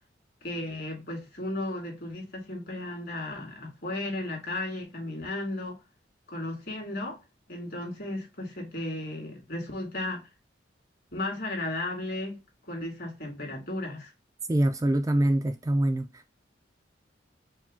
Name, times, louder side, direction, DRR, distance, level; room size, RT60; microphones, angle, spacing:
voice 1, 0.4-5.8 6.3-7.2 7.5-10.2 11.1-12.4 12.7-14.1, left 2 dB, 55° left, 2.1 m, -35 dB
voice 2, 14.5-16.3, right 1 dB, 20° right, 0.3 m, -25 dB
4.8 x 2.3 x 3.6 m
head